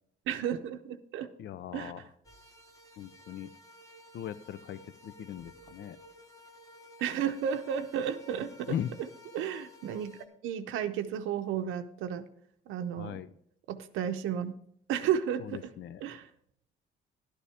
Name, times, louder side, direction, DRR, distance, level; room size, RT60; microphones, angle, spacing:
voice 1, 0.3-1.3 1.7-1.9 7.0-8.8 9.3-10.1 10.4-12.3 12.7-13.2 13.7-14.5 14.9-15.7 16.0-16.3, right 9 dB, 90° right, 8 dB, 0.7 m, -33 dB
voice 2, 1.4-2.1 3.0-3.5 4.1-6.0 8.7-8.9 13.0-13.3 15.4-16.0, left 10 dB, 65° left, 16 dB, 0.5 m, -39 dB
sound 1, 2.2-10.3, left 1 dB, 15° left, 1.3 m, -54 dB
11.5 x 10.0 x 3.4 m, 0.69 s
cardioid pair, 90°, 20 cm